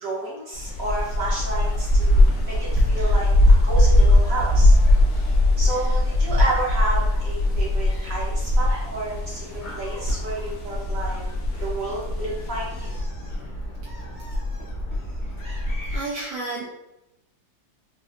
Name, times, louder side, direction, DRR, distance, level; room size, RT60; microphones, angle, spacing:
voice 1, 0.0-4.7 5.6-9.5 9.8-11.2 11.6-13.0, right 2 dB, 60° right, -5 dB, 1.0 m, -31 dB
Gull seagull, 0.5-16.0, left 1 dB, 35° left, 0.7 m, -21 dB
sound 1, 0.7-13.0, left 2 dB, 90° left, 0.6 m, -46 dB
sound 2, 1.2-6.6, left 4 dB, 70° left, 1.0 m, -44 dB
voice 2, 15.9-16.6, right 3 dB, 80° right, -4 dB, 1.3 m, -32 dB
4.0 x 2.4 x 2.4 m, 0.90 s
omnidirectional pair, 2.0 m